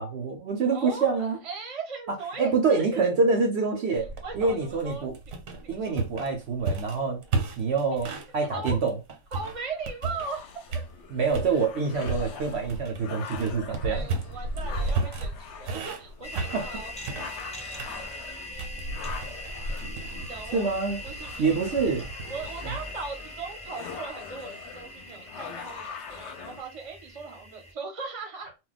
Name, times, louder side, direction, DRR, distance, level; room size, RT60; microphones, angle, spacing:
voice 1, 0.0-1.4 2.1-4.1 4.3-5.1 5.7-7.2 7.6-9.0 11.1-14.1 16.5-16.7 20.5-21.0 21.4-22.1, right 4 dB, 60° right, 0.8 m, -26 dB
voice 2, 0.7-3.0 4.2-5.1 5.7-6.0 8.0-8.2 8.5-8.8 9.3-10.4 10.7-10.8 13.7-16.9 17.2-20.7 21.0-22.0 22.3-28.5, right 4 dB, 30° right, 0.7 m, -39 dB
sound 1, 4.0-8.3 8.6-10.4 10.7-11.5 12.0-22.5, right 3 dB, 80° right, 1.1 m, -34 dB
sound 2, 9.4-26.6, left 7 dB, 65° left, 0.8 m, -43 dB
sound 3, 16.2-27.7, left 1 dB, 5° left, 0.5 m, -41 dB
2.2 x 2.2 x 3.9 m
omnidirectional pair, 1.4 m